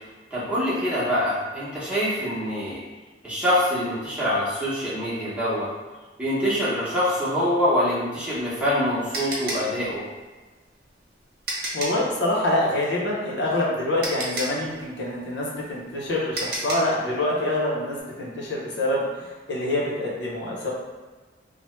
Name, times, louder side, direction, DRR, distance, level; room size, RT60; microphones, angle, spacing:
voice 1, 0.3-2.8 3.2-5.7 6.2-10.0, equal, 5° right, -10 dB, 0.9 m, -25 dB
sound 1, 8.2-12.1 13.5-13.6 14.0-17.0, right 1 dB, 55° right, 0.7 m, -32 dB
voice 2, 11.7-20.7, left 1 dB, 65° left, -5 dB, 0.7 m, -26 dB
3.1 x 2.1 x 3.1 m, 1.3 s
head